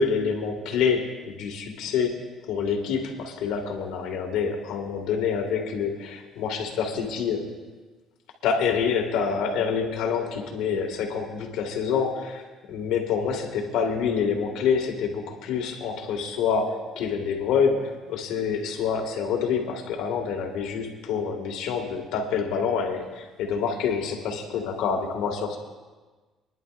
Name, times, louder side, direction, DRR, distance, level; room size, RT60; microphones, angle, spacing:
voice 1, 0.0-7.5 8.4-12.4 12.7-25.6, left 6 dB, 85° left, 2 dB, 1.9 m, -27 dB
27.0 x 10.5 x 2.5 m, 1.3 s
cardioid pair, 130°, 0 cm